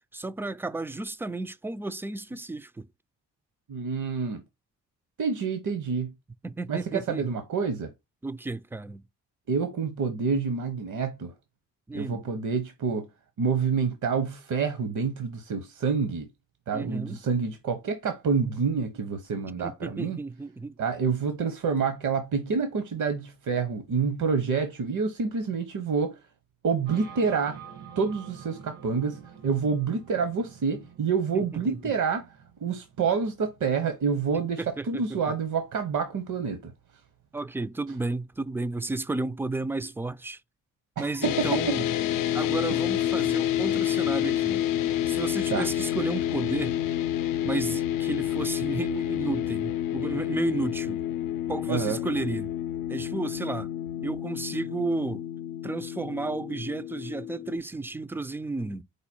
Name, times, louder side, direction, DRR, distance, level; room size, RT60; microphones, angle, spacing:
voice 1, 0.1-2.9 6.4-7.4 8.2-9.0 11.9-12.2 16.7-17.2 19.6-20.7 31.3-31.8 34.6-35.2 37.3-40.4 41.0-41.9 42.3-44.6 45.1-46.8 47.4-51.0 51.5-52.5 52.9-53.7 54.0-55.3 55.6-58.8, right 3 dB, 5° right, 0.3 m, -32 dB
voice 2, 3.7-4.4 5.2-6.1 6.7-7.9 9.5-11.3 11.9-13.1 13.4-16.3 16.7-20.2 20.8-26.2 26.6-27.6 28.0-32.3 32.6-36.7 41.0-41.8 45.5-45.7 51.7-52.0, right 5 dB, 60° right, 0.9 m, -28 dB
sound 1, 26.9-36.5, right 7 dB, 85° right, 1.5 m, -49 dB
sound 2, 41.2-57.6, left 11 dB, 75° left, 0.5 m, -29 dB
5.0 x 2.2 x 4.2 m
cardioid pair, 70°, 34 cm